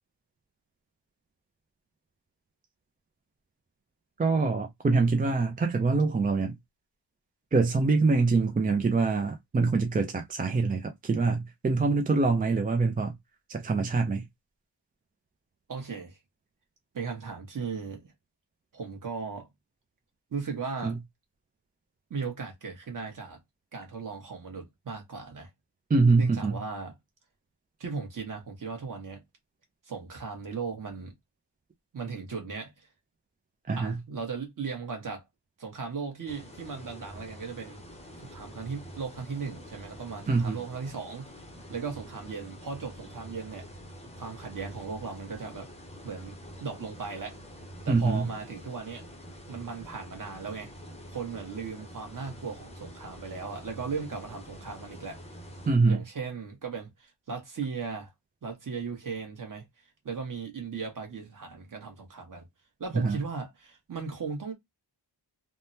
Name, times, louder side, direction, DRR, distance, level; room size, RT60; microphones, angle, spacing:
voice 1, 4.2-6.5 7.5-13.1 13.5-14.2 20.8-20.9 25.9-26.6 33.7-34.0 40.3-40.6 47.9-48.3 55.7-56.0 62.9-63.2, right 3 dB, 20° right, 0.3 m, -25 dB
voice 2, 15.7-16.2 16.9-18.1 18.7-19.5 20.3-21.0 22.1-23.4 23.7-25.5 26.2-26.9 27.8-29.2 29.9-31.1 31.9-32.7 33.8-35.2 35.6-37.8 38.2-41.3 41.7-43.7 44.2-45.7 46.0-47.4 47.9-49.1 49.5-50.7 51.1-55.2 55.9-58.1 58.4-59.6 60.0-62.4 62.8-64.5, right 5 dB, 45° right, 1.2 m, -37 dB
sound 1, 36.3-55.7, equal, 15° left, 0.6 m, -46 dB
3.4 x 2.1 x 2.6 m
wide cardioid pair, 175°, 44 cm